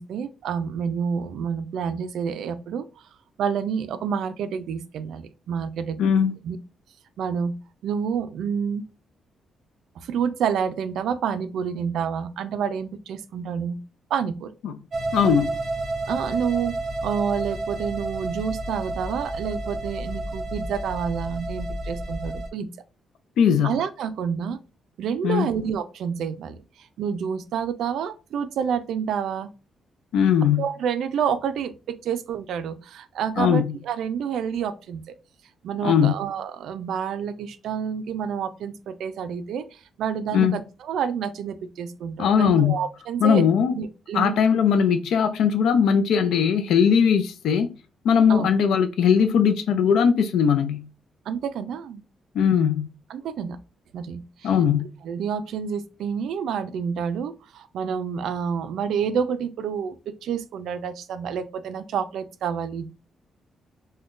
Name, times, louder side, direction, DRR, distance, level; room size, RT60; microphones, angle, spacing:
voice 1, 0.0-3.0 3.4-6.0 6.4-6.6 7.2-7.5 7.8-8.8 10.0-13.8 14.1-14.5 16.1-16.8 17.0-22.7 23.6-24.6 25.0-29.5 30.6-35.0 35.6-43.4 43.7-44.3 48.3-48.5 51.3-52.0 53.1-53.6 53.9-54.5 55.0-62.9, right 7 dB, 80° right, 0.3 m, -28 dB
voice 2, 6.0-6.4 14.6-14.7 15.1-15.6 23.4-23.8 25.2-25.5 30.1-30.7 33.4-33.8 35.8-36.1 40.3-40.6 42.2-42.8 43.2-43.7 44.1-47.7 48.0-50.9 52.3-52.9 54.4-54.9, left 7 dB, 85° left, 0.3 m, -20 dB
sound 1, 14.9-22.5, right 2 dB, 40° right, 0.6 m, -30 dB
3.6 x 2.2 x 2.4 m
cardioid pair, 160°, 0 cm